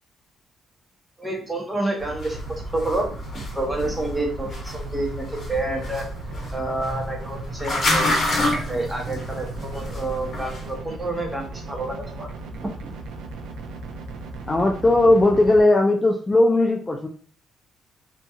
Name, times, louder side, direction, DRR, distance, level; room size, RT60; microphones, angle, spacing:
voice 1, 1.2-6.1 6.5-12.7, right 2 dB, 15° right, 0 dB, 0.8 m, -29 dB
sound 1, 2.0-10.7, left 1 dB, 50° left, 0.9 m, -29 dB
sound 2, 2.3-15.6, right 2 dB, 85° right, 0.3 m, -37 dB
voice 2, 14.5-17.1, left 2 dB, 20° left, 1 dB, 0.3 m, -18 dB
2.7 x 2.3 x 2.3 m, 0.42 s
cardioid pair, 90°, 0 cm